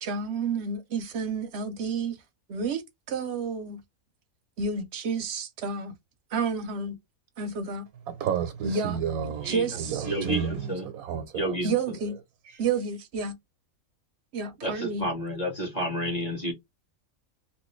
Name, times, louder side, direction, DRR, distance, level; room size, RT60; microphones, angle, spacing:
voice 1, 0.0-2.2 2.5-2.8 3.1-3.8 4.6-5.9 6.3-7.0 7.4-7.8 8.6-9.0 9.4-10.0 11.6-12.1 12.6-13.3 14.3-15.1, right 5 dB, 55° right, 0.9 m, -30 dB
voice 2, 8.1-11.7 12.1-12.2, right 8 dB, 85° right, 1.2 m, -32 dB
voice 3, 10.0-10.9 11.3-11.7 14.6-16.5, equal, 30° left, 1.3 m, -30 dB
3.1 x 2.8 x 3.1 m
omnidirectional pair, 1.5 m